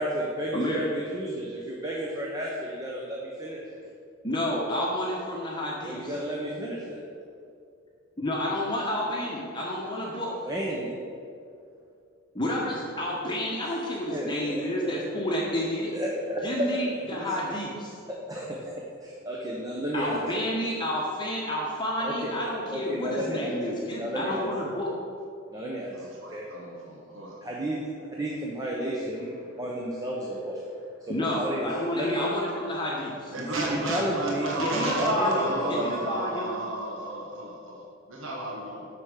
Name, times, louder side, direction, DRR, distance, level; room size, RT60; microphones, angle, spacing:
voice 1, 0.0-3.6 5.8-7.0 10.3-11.0 13.6-13.8 14.1-14.9 15.9-16.8 17.2-17.3 18.1-18.7 19.0-20.4 22.0-22.4 22.7-23.7 24.0-24.5 25.5-26.5 27.4-27.8 28.1-30.6 31.0-32.2 33.4-36.2, right 1 dB, 15° right, -3 dB, 0.9 m, -32 dB
voice 2, 0.5-0.9 4.2-6.1 8.2-10.3 12.3-15.9 16.4-17.9 19.9-24.9 31.1-33.3 34.6-36.6, left 1 dB, 20° left, -4 dB, 1.1 m, -30 dB
voice 3, 25.9-27.4 33.3-38.9, right 1 dB, 65° right, -3 dB, 1.4 m, -32 dB
8.3 x 5.8 x 6.6 m, 2.4 s
head